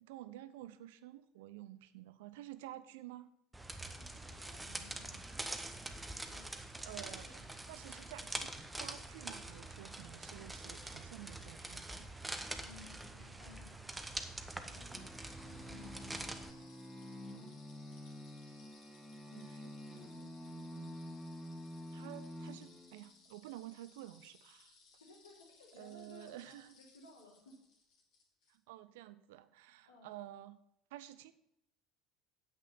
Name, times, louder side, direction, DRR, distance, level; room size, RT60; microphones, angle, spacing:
voice 1, 0.0-3.3 5.5-5.7 6.8-12.2 19.3-21.0 21.9-24.8 25.8-26.8 28.5-30.6 30.9-31.3, right 14 dB, 60° right, 14 dB, 0.6 m, -51 dB
sound 1, 3.5-16.5, right 2 dB, 10° right, 1.0 m, -45 dB
voice 2, 4.0-5.4 6.3-6.4 7.2-7.5 12.6-13.8 14.7-16.8 22.1-22.2 25.0-27.5 29.8-30.1, left 3 dB, 75° left, -1 dB, 2.8 m, -59 dB
sound 2, 14.9-23.2, equal, 5° left, 2.2 m, -48 dB
sound 3, 15.1-28.6, left 4 dB, 50° left, 2.7 m, -64 dB
9.3 x 8.3 x 5.7 m, 0.78 s
figure-of-eight pair, 65°, 0 cm